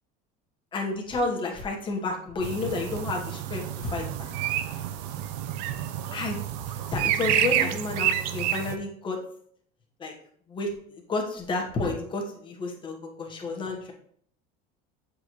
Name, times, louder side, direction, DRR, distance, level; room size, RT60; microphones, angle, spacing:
voice 1, 0.7-4.5 6.1-6.4 6.9-9.2 10.0-10.1 10.5-13.9, left 3 dB, 25° left, 0 dB, 1.4 m, -31 dB
sound 1, 2.4-8.7, right 11 dB, 80° right, 0.6 m, -29 dB
7.4 x 4.3 x 3.1 m, 0.62 s
cardioid pair, 140°, 21 cm